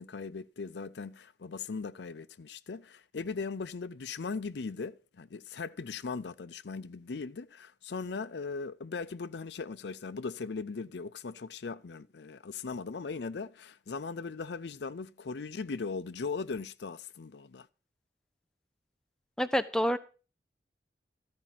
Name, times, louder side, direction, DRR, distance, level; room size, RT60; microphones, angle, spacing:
voice 1, 0.0-17.7, left 4 dB, 70° left, 0.5 m, -39 dB
voice 2, 19.4-20.0, equal, 5° left, 0.6 m, -27 dB
14.0 x 5.2 x 7.4 m
head